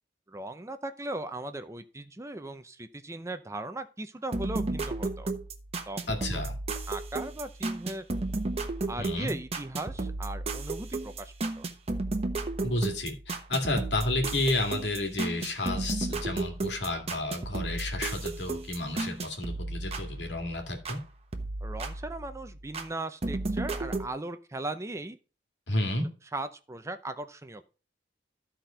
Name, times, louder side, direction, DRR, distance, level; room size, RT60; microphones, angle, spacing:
voice 1, 0.3-5.3 5.9-6.0 6.3-6.4 6.9-8.0 8.9-11.7 21.6-25.2 26.3-27.6, right 2 dB, 15° right, 9 dB, 0.6 m, -38 dB
sound 1, 4.3-21.0 21.3-22.9 23.2-24.1, right 2 dB, 35° right, 1.1 m, -34 dB
voice 2, 6.1-6.6 9.0-9.3 12.6-21.0 25.7-26.1, left 2 dB, 85° left, 3 dB, 2.3 m, -31 dB
13.0 x 4.4 x 5.0 m, 0.34 s
head